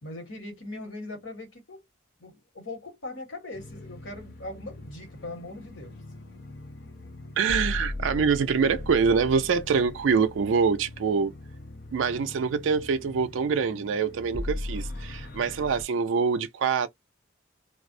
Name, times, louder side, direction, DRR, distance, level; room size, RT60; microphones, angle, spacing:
voice 1, 0.0-1.8 2.2-6.0, left 2 dB, 80° left, 1.3 m, -40 dB
sound 1, 3.5-15.8, left 1 dB, 55° left, 0.6 m, -39 dB
voice 2, 7.4-11.3 11.9-16.9, right 5 dB, 75° right, 0.4 m, -25 dB
2.4 x 2.0 x 2.5 m
head